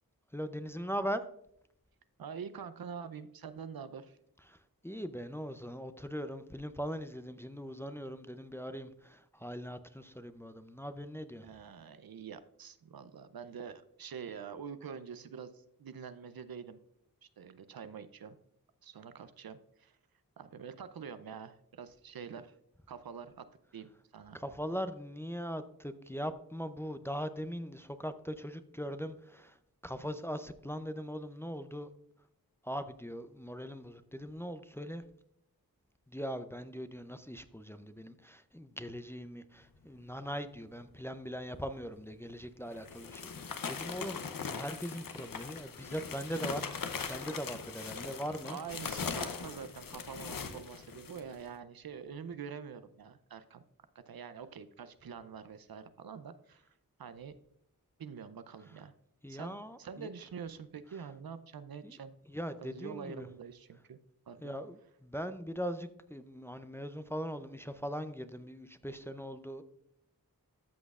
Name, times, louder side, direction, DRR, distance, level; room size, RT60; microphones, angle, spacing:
voice 1, 0.3-1.2 4.5-4.6 4.8-11.4 24.3-29.6 29.8-31.9 32.6-35.0 36.1-46.6 46.9-48.6 59.2-60.1 61.8-62.0 62.3-63.3 64.4-69.6, equal, 5° left, 10 dB, 0.5 m, -40 dB
voice 2, 2.2-4.2 11.4-16.8 17.2-18.4 18.8-20.0 20.4-22.5 22.9-23.5 23.7-24.4 48.4-53.6 53.9-56.6 57.0-57.3 58.0-58.9 59.3-62.2 62.6-64.0 64.3-64.6, right 6 dB, 75° right, 12 dB, 0.6 m, -46 dB
sound 1, 42.0-42.1 42.7-51.4, left 5 dB, 65° left, 0.8 m, -40 dB
13.5 x 6.2 x 2.4 m, 0.75 s
cardioid pair, 45°, 36 cm